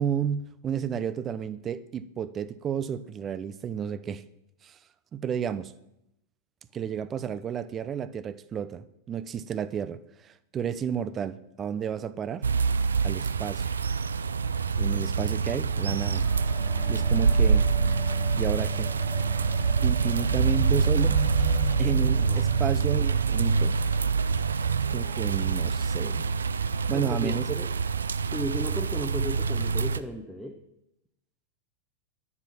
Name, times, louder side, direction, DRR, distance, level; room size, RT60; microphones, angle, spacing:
voice 1, 0.0-4.2 4.6-4.8 5.1-5.7 6.7-12.5 13.0-13.7 14.8-16.3 16.9-17.7 18.4-18.9 19.8-21.2 21.8-23.7 24.9-26.2 26.9-27.6, right 8 dB, 25° right, 0.7 m, -32 dB
sound 1, 12.4-30.0, right 5 dB, 70° right, 0.5 m, -25 dB
sound 2, 15.7-25.2 26.0-26.1, left 2 dB, 25° left, 2.3 m, -39 dB
voice 2, 22.0-22.8 26.9-27.7 28.3-30.6, equal, ahead, 1.1 m, -36 dB
12.0 x 9.7 x 5.8 m
figure-of-eight pair, 90°, 0 cm